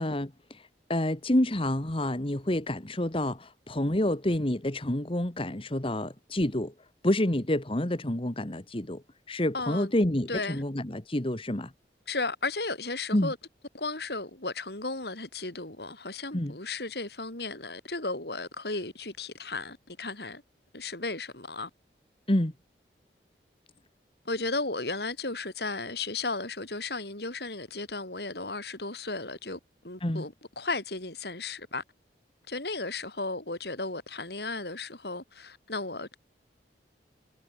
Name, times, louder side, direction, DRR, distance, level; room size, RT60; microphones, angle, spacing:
voice 1, 0.0-6.7 7.0-9.0 9.3-11.7 13.1-13.3 16.3-16.5 22.3-22.5 30.0-30.2, left 1 dB, 30° left, 1.6 m, -28 dB
voice 2, 9.5-9.9 10.3-10.6 12.1-13.4 13.7-20.4 20.7-21.7 24.2-31.8 32.5-36.2, left 3 dB, 65° left, 5.0 m, -35 dB
head